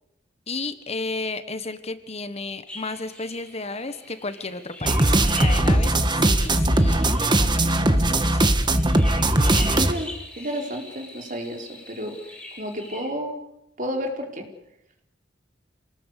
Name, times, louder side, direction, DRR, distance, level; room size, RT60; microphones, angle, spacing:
voice 1, 0.5-8.5, left 3 dB, 35° left, 11 dB, 1.4 m, -33 dB
sound 1, 2.7-13.1, left 1 dB, 5° left, 7.4 m, -41 dB
sound 2, 4.8-9.9, right 1 dB, 25° right, 1.6 m, -19 dB
voice 2, 9.6-12.1 12.6-13.4 13.8-14.5, equal, 45° right, 3 dB, 4.6 m, -31 dB
28.0 x 19.5 x 8.4 m, 0.85 s
head